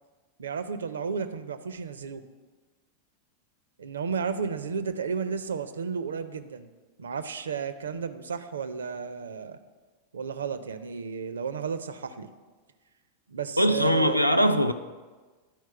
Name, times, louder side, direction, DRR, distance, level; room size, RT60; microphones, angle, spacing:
voice 1, 0.4-2.2 3.8-6.7 7.0-9.6 10.1-12.3 13.3-14.5, right 6 dB, 70° right, 0.5 m, -33 dB
voice 2, 13.6-14.7, equal, 90° left, 0.4 m, -21 dB
11.0 x 4.6 x 5.7 m
figure-of-eight pair, 90°, 0 cm